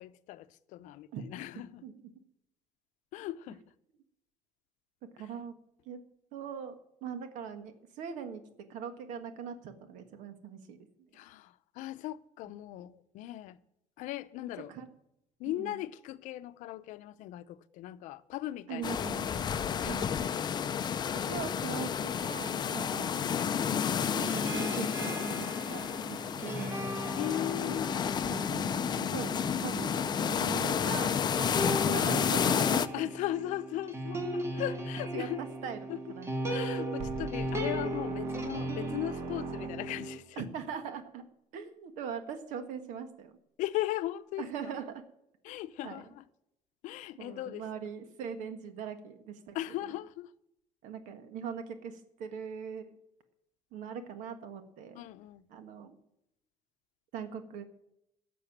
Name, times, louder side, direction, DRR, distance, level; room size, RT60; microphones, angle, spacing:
voice 1, 0.0-1.8 3.1-3.6 11.1-13.6 14.0-14.7 15.4-20.2 27.2-27.9 32.9-35.4 35.9-36.0 36.5-40.4 43.6-44.4 45.4-46.2 46.8-47.7 49.5-50.3 54.9-55.5, left 14 dB, 85° left, 0.7 m, -38 dB
voice 2, 5.1-5.5 5.8-6.0 6.3-6.7 7.0-8.4 8.7-10.8 14.7-14.9 15.4-15.8 18.7-19.3 19.9-20.1 21.2-23.2 24.0-26.8 28.9-32.9 33.4-33.5 34.6-34.7 35.1-35.8 36.1-36.6 37.5-37.6 40.4-41.2 41.5-43.3 44.4-45.0 45.8-46.0 47.2-49.6 50.8-52.9 53.7-55.0 55.5-56.0 57.1-57.6, right 7 dB, 85° right, 1.6 m, -41 dB
sound 1, 18.8-32.9, left 8 dB, 35° left, 0.6 m, -31 dB
sound 2, 24.1-40.2, right 1 dB, 20° right, 1.7 m, -37 dB
sound 3, 37.0-40.2, right 6 dB, 60° right, 1.2 m, -42 dB
12.0 x 6.9 x 8.7 m
cardioid pair, 140°, 12 cm